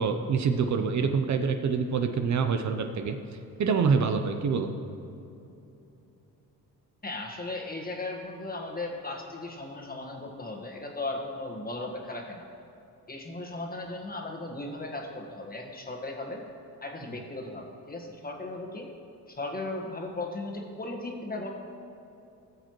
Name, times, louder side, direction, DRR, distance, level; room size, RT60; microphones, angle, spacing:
voice 1, 0.0-3.2 3.6-4.7, right 5 dB, 50° right, 6 dB, 0.7 m, -26 dB
voice 2, 7.0-12.4 13.1-16.4 16.8-18.9 19.3-21.5, left 2 dB, 25° left, 1 dB, 1.5 m, -36 dB
16.0 x 6.6 x 3.1 m, 2.8 s
cardioid pair, 85°, 36 cm